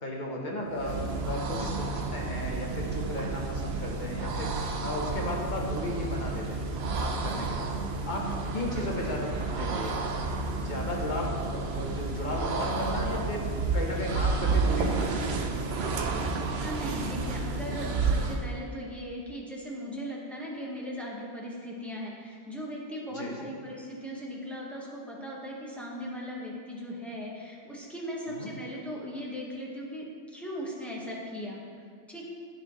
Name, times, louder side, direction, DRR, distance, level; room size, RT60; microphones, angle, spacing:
voice 1, 0.0-4.6 4.8-6.7 7.0-7.7 8.0-8.2 8.5-10.0 10.6-15.2 23.1-23.5 28.4-28.5, left 1 dB, 45° left, -1 dB, 1.2 m, -34 dB
sound 1, 0.7-18.5, right 3 dB, 75° right, 0.9 m, -31 dB
voice 2, 16.3-31.6 32.1-32.3, equal, ahead, -4 dB, 1.2 m, -38 dB
13.0 x 4.5 x 3.1 m, 2.2 s
omnidirectional pair, 1.1 m